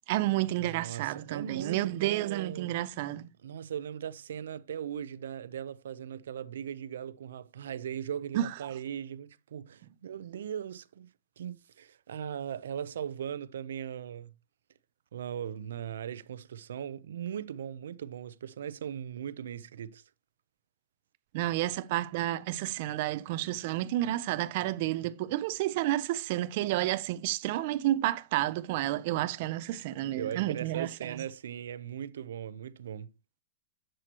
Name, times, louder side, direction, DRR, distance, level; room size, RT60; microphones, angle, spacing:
voice 1, 0.1-3.3 8.3-8.5 21.3-31.2, right 15 dB, 50° right, 0.7 m, -30 dB
voice 2, 0.6-2.7 3.4-14.3 15.1-20.0 30.2-33.1, right 9 dB, 90° right, 0.7 m, -39 dB
11.0 x 7.7 x 3.0 m
supercardioid pair, 155°, 0 cm